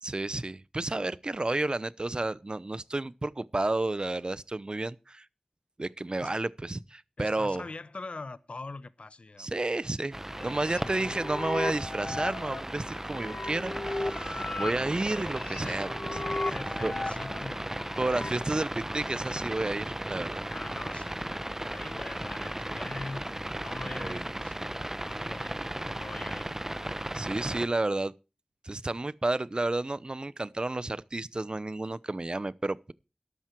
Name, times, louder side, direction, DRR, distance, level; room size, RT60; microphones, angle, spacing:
voice 1, 0.0-5.3 5.8-7.6 9.4-10.2 10.4-16.2 16.8-16.9 18.0-20.5 23.8-24.2 27.1-28.1 28.6-32.9, right 2 dB, 45° right, 0.8 m, -31 dB
voice 2, 7.2-9.5 10.8-11.2 15.6-17.7 20.5-25.6 25.9-26.5, left 3 dB, 75° left, 0.9 m, -43 dB
sound 1, 10.1-27.7, right 1 dB, 20° right, 0.9 m, -36 dB
sound 2, 10.4-18.4, left 2 dB, 55° left, 1.3 m, -37 dB
13.0 x 12.0 x 4.6 m
wide cardioid pair, 45°, 2 cm